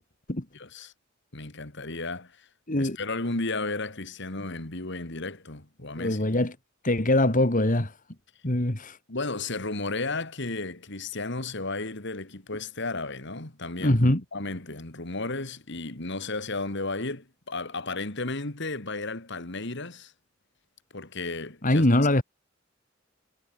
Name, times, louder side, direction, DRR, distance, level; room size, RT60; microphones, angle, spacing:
voice 1, 0.5-0.9 1.3-2.5 2.8-6.3 9.1-14.0 14.3-20.1 20.9-21.9, left 3 dB, 60° left, 2.9 m, -33 dB
voice 2, 6.0-6.5 6.8-7.9 8.4-9.0 13.8-14.2 21.6-22.2, left 1 dB, 40° left, 2.6 m, -22 dB
head